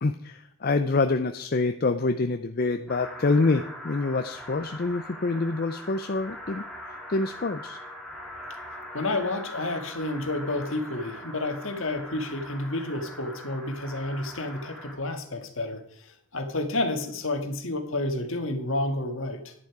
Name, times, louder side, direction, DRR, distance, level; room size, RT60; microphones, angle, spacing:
voice 1, 0.0-6.6 7.1-7.8, left 3 dB, 45° left, 8 dB, 0.5 m, -26 dB
sound 1, 2.9-14.9, left 1 dB, ahead, 3.1 m, -42 dB
voice 2, 8.9-19.5, left 2 dB, 60° left, 6 dB, 1.8 m, -30 dB
11.0 x 10.5 x 4.8 m, 0.64 s
head